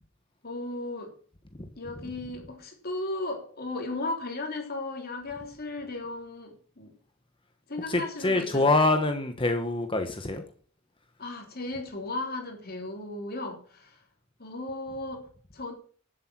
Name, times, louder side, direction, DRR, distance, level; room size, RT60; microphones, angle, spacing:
voice 1, 0.4-1.2 1.7-6.9 7.7-8.7 11.2-14.0 14.4-15.7, left 2 dB, 50° left, 3.4 m, -36 dB
voice 2, 7.9-10.4, left 2 dB, 25° left, 1.2 m, -25 dB
11.5 x 7.8 x 6.2 m
head